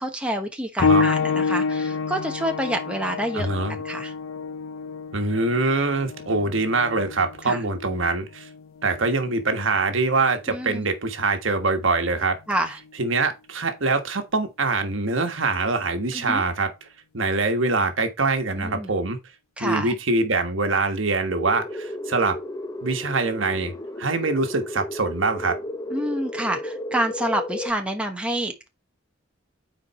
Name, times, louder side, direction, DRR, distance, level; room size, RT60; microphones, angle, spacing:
voice 1, 0.0-3.5 3.8-4.1 7.4-7.6 10.5-10.8 12.5-12.8 16.1-16.4 18.6-18.9 19.6-19.9 25.9-28.7, right 1 dB, 5° right, 1.0 m, -28 dB
sound 1, 0.8-11.0 12.0-12.1 12.8-12.9, left 5 dB, 85° left, 0.5 m, -28 dB
voice 2, 3.3-3.8 5.1-8.5 8.8-12.3 13.0-16.7 17.1-19.2 19.6-22.3 22.8-25.5, right 3 dB, 70° right, 1.4 m, -24 dB
sound 2, 21.3-27.7, left 1 dB, 20° left, 0.7 m, -33 dB
7.4 x 4.6 x 4.2 m
head